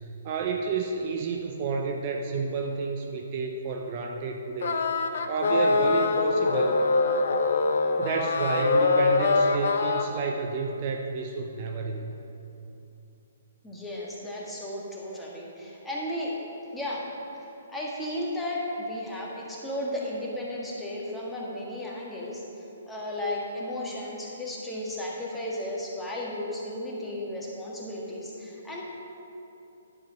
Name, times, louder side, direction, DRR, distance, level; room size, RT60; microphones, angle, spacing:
voice 1, 0.2-4.8 5.3-6.8 8.0-12.2, right 4 dB, 40° right, 2 dB, 0.7 m, -30 dB
sound 1, 4.6-10.1, left 3 dB, 65° left, 0.7 m, -23 dB
voice 2, 13.6-16.4 16.7-17.1 17.4-28.8, left 1 dB, 5° left, -5 dB, 1.6 m, -34 dB
11.0 x 5.0 x 6.1 m, 2.8 s
hypercardioid pair, 140°, 0 cm